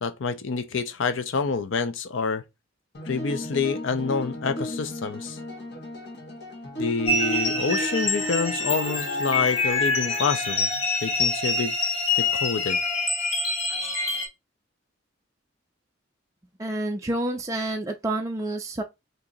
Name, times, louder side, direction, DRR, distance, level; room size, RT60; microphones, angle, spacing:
voice 1, 0.0-2.4 3.1-5.4 6.8-10.7 11.0-11.7 12.2-12.8, left 5 dB, 75° left, 0.5 m, -27 dB
sound 1, 2.9-10.3, left 1 dB, 60° left, 1.2 m, -35 dB
sound 2, 7.1-14.3, left 3 dB, 30° left, 0.9 m, -26 dB
voice 2, 16.6-18.8, right 1 dB, 15° right, 0.4 m, -28 dB
2.9 x 2.6 x 3.8 m
head